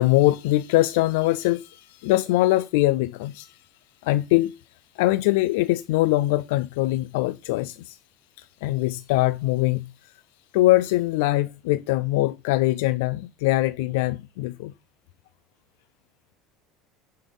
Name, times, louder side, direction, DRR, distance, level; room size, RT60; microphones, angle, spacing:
voice 1, 0.0-3.6 4.0-4.5 5.0-8.0 8.4-10.1 10.5-14.7, left 17 dB, 85° left, 0.5 m, -22 dB
11.0 x 5.5 x 5.4 m
cardioid pair, 170°, 0 cm